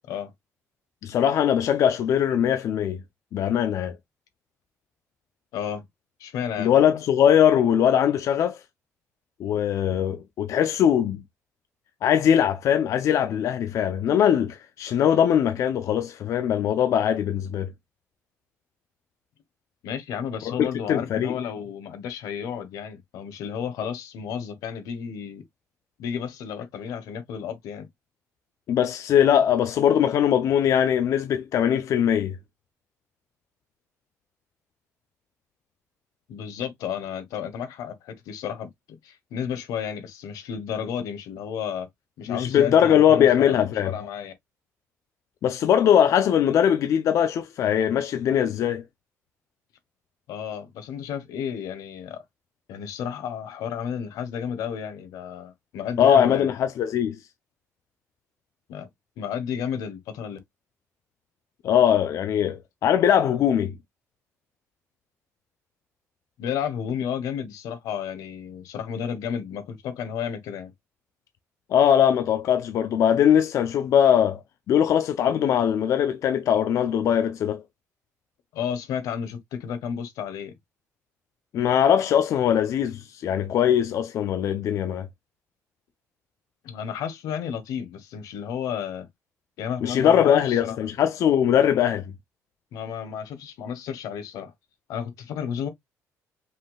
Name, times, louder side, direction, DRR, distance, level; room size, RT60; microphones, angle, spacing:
voice 1, 1.0-3.0 3.3-3.9 6.6-8.6 9.4-11.2 12.0-17.7 20.4-21.4 28.7-32.4 42.3-43.9 45.4-48.8 56.0-57.2 61.6-63.7 71.7-74.4 74.7-77.6 81.5-85.1 89.8-92.0, left 9 dB, 60° left, 0.5 m, -21 dB
voice 2, 5.5-5.8 6.2-6.7 19.8-25.4 26.0-27.9 36.3-38.7 39.0-41.9 42.2-44.3 50.3-52.2 52.7-56.5 58.7-58.9 59.2-60.4 66.4-70.7 78.5-80.5 86.6-89.1 89.6-90.8 92.7-94.5 94.9-95.7, left 8 dB, 90° left, 1.2 m, -32 dB
5.4 x 3.7 x 2.2 m
cardioid pair, 130°, 6 cm